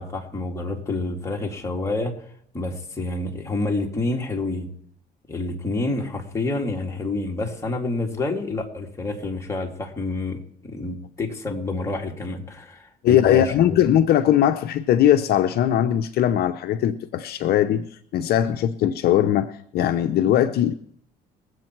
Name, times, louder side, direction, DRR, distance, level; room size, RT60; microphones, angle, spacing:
voice 1, 0.0-2.1 2.5-4.7 5.3-13.8, left 2 dB, 15° left, 0 dB, 2.5 m, -28 dB
voice 2, 13.0-20.7, left 11 dB, 65° left, 9 dB, 0.7 m, -20 dB
22.0 x 8.0 x 4.5 m, 0.64 s
cardioid pair, 110°, 17 cm